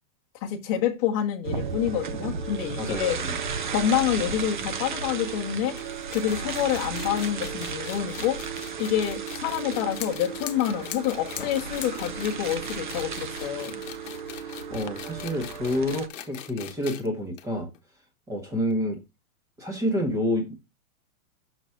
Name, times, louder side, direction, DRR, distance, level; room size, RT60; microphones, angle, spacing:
voice 1, 0.4-3.2 3.7-5.7 6.1-8.4 8.8-13.8, left 10 dB, 25° left, 1.1 m, -27 dB
sound 1, 1.4-16.1, right 6 dB, 35° right, 0.4 m, -34 dB
voice 2, 2.8-3.4 14.4-17.7 18.3-19.0 19.6-20.6, left 1 dB, 5° right, 1.2 m, -28 dB
sound 2, 5.8-17.1 17.4-17.5 17.7-17.8 18.7-18.8, left 11 dB, 60° left, 1.1 m, -43 dB
Fire, 9.4-14.9, left 11 dB, 40° left, 0.4 m, -42 dB
6.3 x 3.9 x 5.7 m
supercardioid pair, 175°, 44 cm